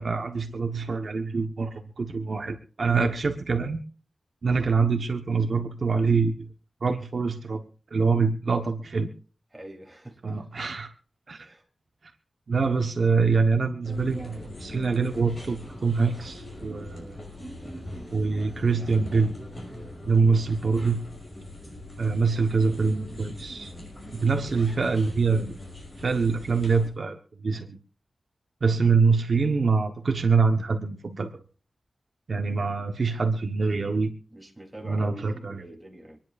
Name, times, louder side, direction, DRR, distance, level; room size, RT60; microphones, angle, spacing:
voice 1, 0.0-3.8 4.4-6.5 6.8-7.6 7.9-9.1 10.2-10.9 11.3-11.5 12.5-17.2 18.1-19.3 20.0-21.0 22.0-23.7 24.1-25.5 26.0-27.8 28.6-31.3 32.3-34.1 34.8-35.6, right 4 dB, 60° right, 1.2 m, -25 dB
voice 2, 9.5-10.4 11.3-11.6 17.0-17.2 34.3-36.2, right 1 dB, 10° right, 3.4 m, -45 dB
sound 1, 13.8-26.9, left 1 dB, 25° left, 6.1 m, -41 dB
26.0 x 10.5 x 2.6 m
wide cardioid pair, 125°, 0 cm